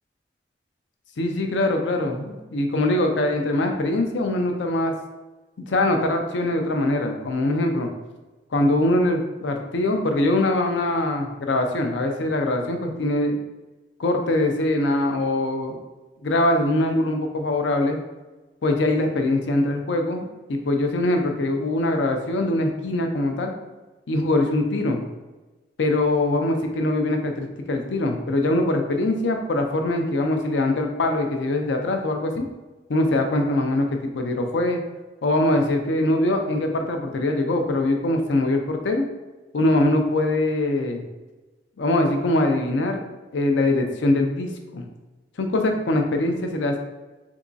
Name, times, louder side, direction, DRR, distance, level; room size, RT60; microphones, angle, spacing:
voice 1, 1.2-4.9 5.6-7.9 8.5-13.4 14.0-15.8 16.2-18.0 18.6-23.5 24.1-25.0 25.8-32.5 32.9-34.8 35.2-39.0 39.5-41.0 41.8-43.0 43.3-44.9 45.4-46.8, left 1 dB, 80° left, 4 dB, 0.5 m, -22 dB
3.5 x 2.9 x 2.6 m, 1.2 s
head